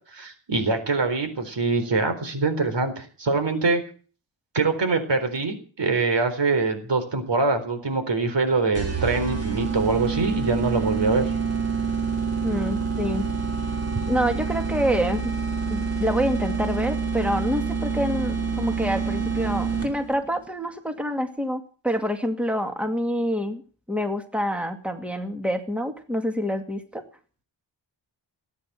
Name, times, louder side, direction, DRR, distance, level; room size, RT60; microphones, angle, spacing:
voice 1, 0.1-3.8 4.5-11.3, right 3 dB, 65° right, 8 dB, 4.2 m, -24 dB
sound 1, 8.8-20.2, right 5 dB, 35° right, 5.0 m, -27 dB
voice 2, 12.4-13.3 14.1-15.3 15.7-23.6 23.9-27.0, equal, 5° right, 6 dB, 2.2 m, -27 dB
18.5 x 9.6 x 7.5 m, 0.39 s
wide cardioid pair, 90°, 45 cm